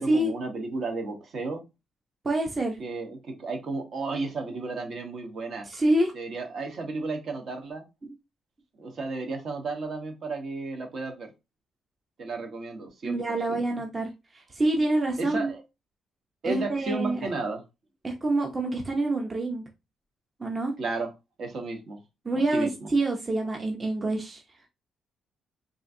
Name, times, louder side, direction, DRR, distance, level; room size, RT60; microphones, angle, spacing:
voice 1, 0.0-1.6 2.8-5.7 6.1-7.8 8.8-11.3 12.2-13.2 13.5-13.6 15.2-15.6 16.4-17.6 20.8-21.1 21.4-22.0 22.3-22.9, right 3 dB, 55° right, 4 dB, 1.0 m, -33 dB
voice 2, 2.2-2.8 5.6-6.1 8.0-8.1 13.0-15.5 16.4-17.3 18.0-19.6 20.4-20.7 22.2-24.4, right 2 dB, 30° right, 2 dB, 0.6 m, -27 dB
3.6 x 2.5 x 2.7 m, 0.25 s
cardioid pair, 90°, 0 cm